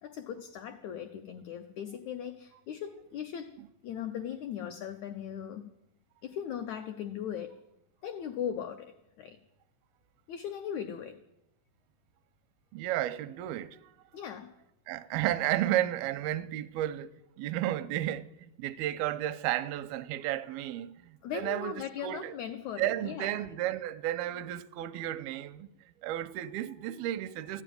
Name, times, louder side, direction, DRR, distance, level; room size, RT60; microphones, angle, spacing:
voice 1, 0.0-5.7 6.2-7.6 8.0-9.4 10.3-11.2 14.1-14.5 21.2-23.4, left 9 dB, 85° left, 1.6 m, -39 dB
voice 2, 12.7-13.9 14.9-17.1 17.4-18.3 18.6-21.7 22.0-22.3 22.8-27.6, right 13 dB, 85° right, 2.5 m, -33 dB
14.5 x 10.0 x 9.2 m
omnidirectional pair, 4.3 m